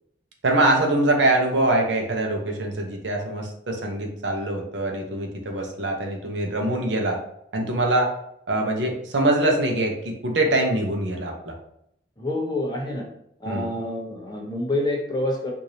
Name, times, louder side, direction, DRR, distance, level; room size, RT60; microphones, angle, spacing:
voice 1, 0.4-7.2 7.5-8.1 8.5-11.5 13.4-13.8, right 2 dB, 70° right, 2 dB, 0.7 m, -23 dB
voice 2, 12.2-13.1 13.4-15.5, left 1 dB, 25° left, -1 dB, 0.8 m, -27 dB
4.7 x 2.6 x 2.7 m, 0.74 s
head